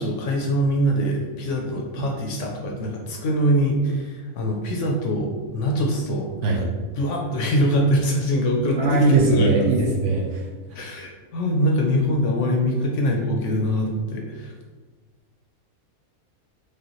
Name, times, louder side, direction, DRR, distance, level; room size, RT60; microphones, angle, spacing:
voice 1, 0.0-6.7 7.0-9.7 10.7-14.5, equal, 65° left, 0 dB, 0.8 m, -23 dB
voice 2, 8.8-10.4, right 3 dB, 65° right, 0 dB, 0.8 m, -20 dB
4.8 x 2.4 x 2.9 m, 1.4 s
omnidirectional pair, 1.5 m